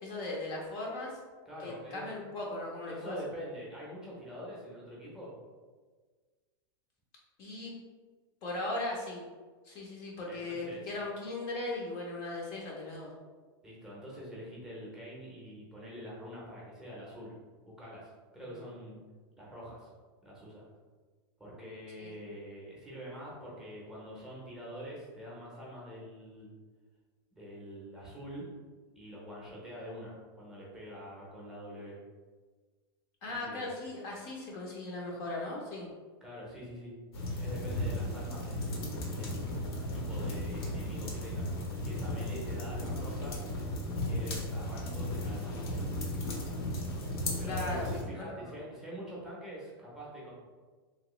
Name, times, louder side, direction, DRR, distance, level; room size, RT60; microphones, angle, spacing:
voice 1, 0.0-1.2 1.6-3.2 7.4-7.8 8.4-9.2 9.6-13.1 18.4-18.6 22.0-22.1 33.2-35.9 47.5-47.9 48.2-48.5, left 2 dB, 35° left, -3 dB, 0.6 m, -38 dB
voice 2, 1.5-2.0 2.9-5.3 10.3-10.8 13.6-17.3 17.6-19.0 19.4-19.9 20.2-20.6 21.4-26.6 27.4-28.5 29.0-32.0 33.3-33.7 36.2-36.9 37.4-41.5 41.8-43.4 43.9-46.0 47.4-50.3, equal, 5° right, -6 dB, 0.7 m, -45 dB
sound 1, 37.1-48.0, left 1 dB, 85° left, 0.9 m, -35 dB
2.9 x 2.9 x 3.0 m, 1.4 s
supercardioid pair, 165°, 13 cm